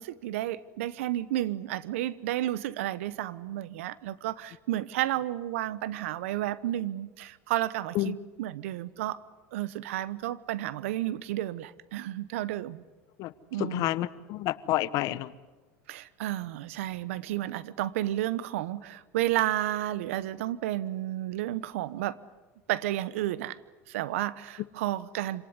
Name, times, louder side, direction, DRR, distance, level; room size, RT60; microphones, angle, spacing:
voice 1, 0.0-9.2 9.5-12.8 13.5-14.0 15.9-22.2 22.7-23.6 23.9-25.5, right 14 dB, 80° right, 19 dB, 1.0 m, -32 dB
voice 2, 13.6-15.3, left 16 dB, 60° left, 17 dB, 1.1 m, -29 dB
26.5 x 18.5 x 9.7 m, 1.3 s
supercardioid pair, 105°, 7 cm